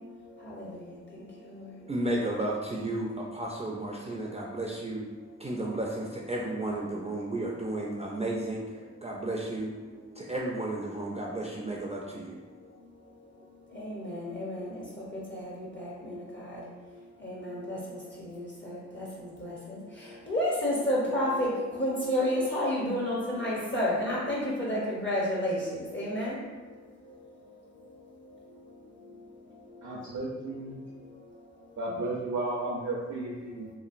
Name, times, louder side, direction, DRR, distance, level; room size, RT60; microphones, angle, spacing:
voice 1, 1.9-5.0 5.4-8.6 9.0-9.7 10.2-12.4, right 1 dB, 20° right, -3 dB, 0.4 m, -33 dB
voice 2, 13.7-14.8 15.3-16.6 17.2-19.0 19.4-19.5 20.3-21.5 21.8-26.3, left 1 dB, 40° left, -5 dB, 0.7 m, -30 dB
voice 3, 29.8-30.8 31.8-33.7, right 2 dB, 70° right, -3 dB, 0.5 m, -33 dB
3.0 x 2.4 x 2.4 m, 1.3 s
wide cardioid pair, 60°, 29 cm